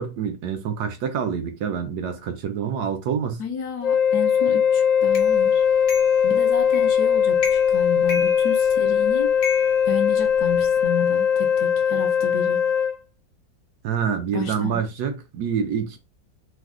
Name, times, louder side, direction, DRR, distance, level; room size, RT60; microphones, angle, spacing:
voice 1, 0.0-3.4 13.8-16.0, right 7 dB, 75° right, 1.0 m, -26 dB
voice 2, 3.4-5.6 6.2-12.7 14.3-14.8, left 6 dB, 70° left, 1.0 m, -32 dB
Wind instrument woodwind instrument, 3.8-13.0, left 7 dB, 90° left, 0.6 m, -20 dB
sound 1, 5.1-5.3 5.9-6.2 6.7-7.0 7.4-7.8 8.1-8.9 9.4-10.7, left 4 dB, 50° left, 0.9 m, -33 dB
3.2 x 2.0 x 3.5 m
omnidirectional pair, 2.0 m